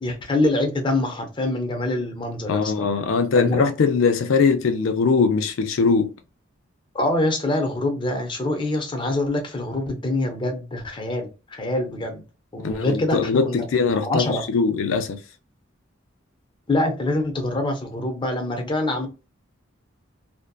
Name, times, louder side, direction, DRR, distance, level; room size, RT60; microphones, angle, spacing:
voice 1, 0.0-2.9 3.3-3.6 6.9-12.2 12.5-13.7 14.0-14.4 16.7-19.1, left 2 dB, 25° left, 0.6 m, -25 dB
voice 2, 2.5-6.1 12.6-15.2, left 5 dB, 80° left, 0.4 m, -21 dB
2.6 x 2.1 x 2.3 m
head